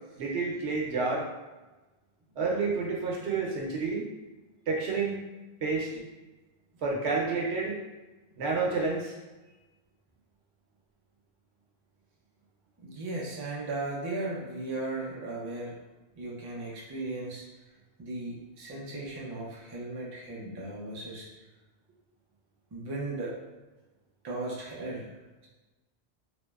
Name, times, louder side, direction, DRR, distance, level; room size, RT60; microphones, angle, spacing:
voice 1, 0.2-1.3 2.4-4.1 4.7-5.2 5.6-5.9 6.8-7.8 8.4-9.1, right 4 dB, 90° right, -2 dB, 0.9 m, -29 dB
voice 2, 12.8-15.8 16.2-17.4 18.0-21.3 22.7-23.3 24.2-25.1, right 2 dB, 40° right, -4 dB, 0.3 m, -36 dB
2.7 x 2.0 x 2.2 m, 1.2 s
omnidirectional pair, 1.1 m